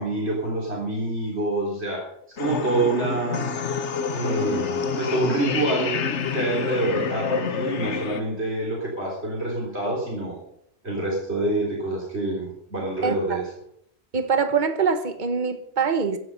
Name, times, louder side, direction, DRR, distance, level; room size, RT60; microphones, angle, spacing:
voice 1, 0.0-2.0 2.4-3.5 4.1-6.0 6.3-10.4 10.8-13.5, right 2 dB, 65° right, 4.1 m, -26 dB
sound 1, 2.4-8.2, left 6 dB, 75° left, 1.3 m, -28 dB
voice 2, 13.0-13.4 14.1-16.2, right 5 dB, 45° right, 1.4 m, -24 dB
15.0 x 11.0 x 5.4 m
omnidirectional pair, 1.2 m